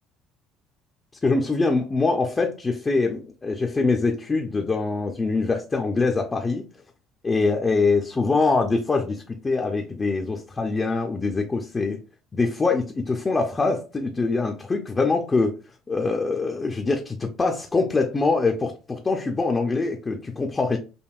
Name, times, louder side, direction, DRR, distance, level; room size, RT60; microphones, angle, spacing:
voice 1, 1.2-6.7 7.2-12.0 12.3-15.6 15.9-20.8, left 3 dB, 20° left, 2 dB, 0.5 m, -24 dB
5.2 x 2.5 x 2.4 m, 0.33 s
cardioid pair, 130°, 0 cm